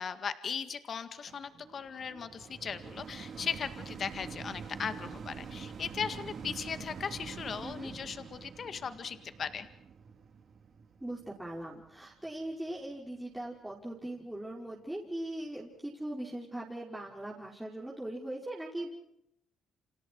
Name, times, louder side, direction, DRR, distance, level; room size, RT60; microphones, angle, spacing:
voice 1, 0.0-9.7, left 6 dB, 50° left, 10 dB, 1.9 m, -38 dB
sound 1, 1.3-12.5 13.1-13.2, right 6 dB, 55° right, 3.6 m, -46 dB
voice 2, 7.6-7.9 11.0-18.9, right 1 dB, 5° right, -4 dB, 5.6 m, -40 dB
30.0 x 27.5 x 4.7 m, 0.77 s
cardioid pair, 90°, 0 cm